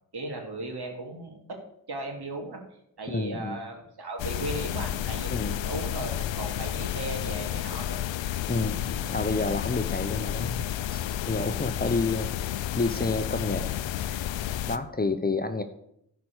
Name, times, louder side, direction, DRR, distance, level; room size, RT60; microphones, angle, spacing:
voice 1, 0.1-1.4 1.9-2.6 3.0-8.0, right 2 dB, 60° right, 3 dB, 2.5 m, -36 dB
voice 2, 3.1-3.6 5.3-5.6 8.5-10.6 10.9-14.2 14.7-15.6, left 3 dB, 20° left, 8 dB, 0.9 m, -30 dB
sound 1, 4.2-14.8, left 11 dB, 75° left, 0.6 m, -31 dB
11.0 x 4.9 x 6.4 m, 0.75 s
cardioid pair, 45°, 45 cm